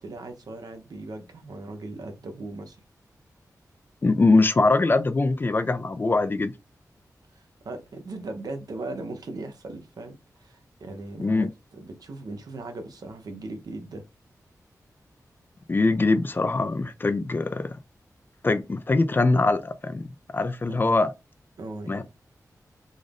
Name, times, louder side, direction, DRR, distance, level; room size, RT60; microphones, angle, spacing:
voice 1, 0.0-2.8 7.3-14.0 20.7-20.9 21.6-22.0, right 2 dB, 75° right, 0.9 m, -38 dB
voice 2, 4.0-6.5 11.2-11.5 15.7-17.8 18.4-20.1 20.3-21.1 21.9-22.0, left 3 dB, 30° left, 0.4 m, -22 dB
3.8 x 2.5 x 3.4 m
wide cardioid pair, 120°, 7 cm